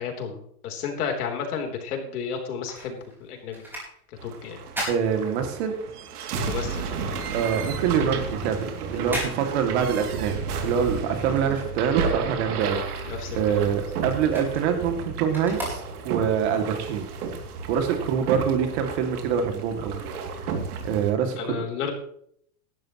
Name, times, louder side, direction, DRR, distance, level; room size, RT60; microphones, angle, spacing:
voice 1, 0.0-3.6 4.2-4.6 6.4-7.0 13.1-13.8 21.4-21.9, left 6 dB, 75° left, 3 dB, 3.6 m, -32 dB
sound 1, 2.2-5.9 6.3-12.3 12.6-16.4 16.9-17.0, equal, 5° right, 4.6 m, -38 dB
sound 2, 4.2-21.1, right 5 dB, 75° right, 2.7 m, -32 dB
voice 2, 4.9-5.7 7.3-10.4 10.6-17.1 17.7-20.0 20.8-21.6, right 7 dB, 45° right, 5 dB, 2.4 m, -25 dB
16.5 x 12.0 x 3.0 m, 0.66 s
supercardioid pair, 165°, 45 cm